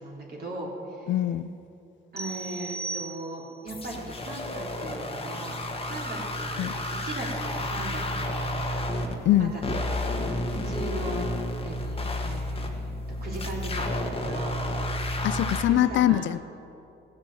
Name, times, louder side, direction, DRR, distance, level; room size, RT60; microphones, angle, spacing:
voice 1, 0.0-1.2 2.1-7.3 7.5-8.5 9.4-10.2 10.5-11.3 11.6-14.6 15.6-16.2, right 2 dB, 50° right, -3 dB, 3.6 m, -38 dB
voice 2, 1.1-1.5 6.6-6.7 9.3-9.5 15.2-16.4, left 13 dB, 70° left, 14 dB, 0.5 m, -23 dB
sound 1, 2.2-3.7, right 3 dB, 15° right, 0.5 m, -36 dB
sound 2, 3.7-9.2 9.6-15.6, left 1 dB, 30° left, 1.6 m, -31 dB
16.5 x 7.3 x 7.5 m, 2.7 s
cardioid pair, 90°, 20 cm